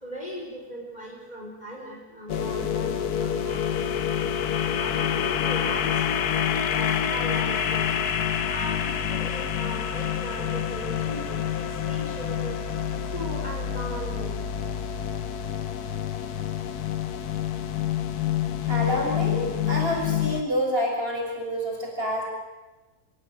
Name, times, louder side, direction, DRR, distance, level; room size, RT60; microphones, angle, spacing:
voice 1, 0.0-4.3 4.8-7.9 8.5-12.6 13.1-14.4, equal, 25° left, -1 dB, 4.9 m, -38 dB
sound 1, 2.3-20.4, left 9 dB, 75° left, 1.5 m, -27 dB
voice 2, 18.6-22.2, equal, 35° right, -2 dB, 6.8 m, -28 dB
28.0 x 16.0 x 9.4 m, 1.2 s
omnidirectional pair, 1.6 m